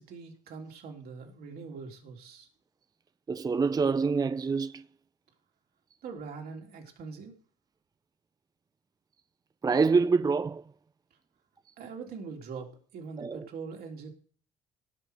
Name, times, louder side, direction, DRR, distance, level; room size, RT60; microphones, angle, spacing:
voice 1, 0.0-2.5 6.0-7.3 11.8-14.1, right 5 dB, 60° right, 3.4 m, -42 dB
voice 2, 3.3-4.8 9.6-10.6 13.2-13.5, right 4 dB, 20° right, 0.5 m, -26 dB
17.5 x 5.9 x 6.5 m
hypercardioid pair, 50°, 17 cm